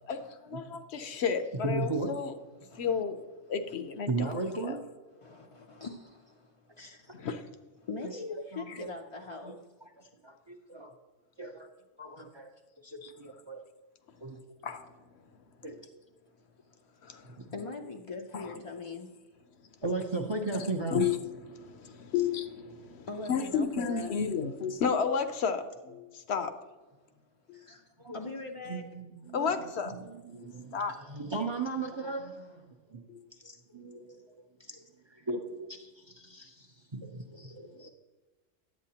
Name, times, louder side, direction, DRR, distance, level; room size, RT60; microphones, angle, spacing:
voice 1, 0.1-2.3 2.8-3.2 3.5-4.3 4.6-4.7 7.2-7.4 8.7-8.8 13.0-13.1 14.6-14.9 17.0-17.4 18.3-18.5 20.9-21.2 21.5-26.5 27.5-27.6 29.3-29.9 30.4-30.9 33.1-33.2, left 6 dB, 65° left, 8 dB, 0.9 m, -32 dB
voice 2, 1.6-2.1 4.1-4.8 6.8-7.2 8.0-9.0 9.4-9.5 9.8-10.9 11.4-11.7 12.0-12.5 12.8-13.6 14.2-14.6 15.6-15.8 19.8-21.1 27.7-28.2 28.7-33.0 33.4-37.9, right 3 dB, 30° right, 4 dB, 0.5 m, -37 dB
voice 3, 2.7-3.0 5.2-6.4 6.8-7.1 7.8-9.6 17.5-19.1 23.1-24.1 27.5-27.8 28.1-28.8, left 3 dB, 50° left, 2 dB, 0.4 m, -41 dB
10.5 x 8.2 x 2.8 m, 1.2 s
omnidirectional pair, 1.2 m